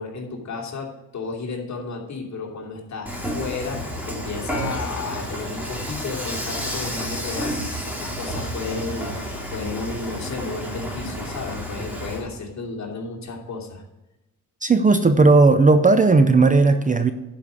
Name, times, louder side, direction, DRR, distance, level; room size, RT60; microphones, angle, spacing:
voice 1, 0.0-13.8, left 4 dB, 55° left, -1 dB, 2.7 m, -33 dB
Dishes pots and pans / Frying (food), 3.1-12.2, equal, 5° right, 2.5 m, -30 dB
voice 2, 14.6-17.1, right 3 dB, 25° right, 10 dB, 0.6 m, -15 dB
11.0 x 5.1 x 8.2 m, 1.0 s
cardioid pair, 110°, 34 cm